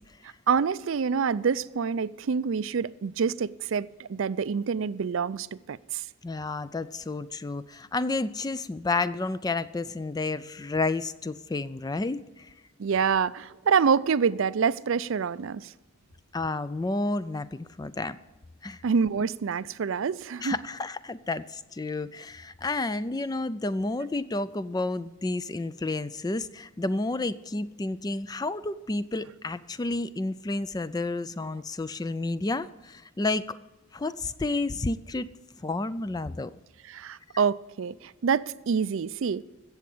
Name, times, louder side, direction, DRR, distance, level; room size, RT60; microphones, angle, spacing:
voice 1, 0.5-6.0 12.8-15.7 18.8-20.6 36.9-39.4, right 6 dB, 65° right, 18 dB, 0.4 m, -26 dB
voice 2, 6.2-12.5 16.3-18.2 18.6-18.8 20.4-33.6 33.9-35.3 35.6-36.5, left 2 dB, 20° left, 15 dB, 0.3 m, -31 dB
16.0 x 7.2 x 8.5 m, 1.2 s
head